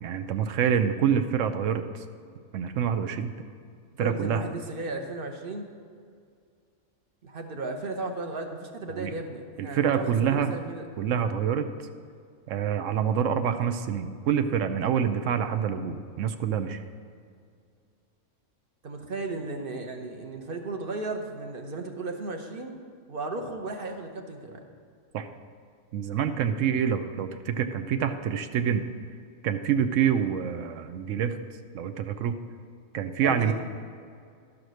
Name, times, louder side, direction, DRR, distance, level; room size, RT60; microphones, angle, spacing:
voice 1, 0.0-1.8 2.5-3.3 4.0-4.4 9.0-9.1 9.6-10.6 11.0-11.7 12.5-16.8 25.1-25.3 25.9-28.8 29.4-31.4 31.7-32.4 32.9-33.5, right 8 dB, 85° right, 9 dB, 1.0 m, -26 dB
voice 2, 3.9-5.7 7.2-10.9 18.8-22.8 23.1-24.6 33.2-33.5, right 3 dB, 50° right, 4 dB, 1.0 m, -35 dB
12.0 x 5.0 x 6.2 m, 2.3 s
omnidirectional pair, 1.3 m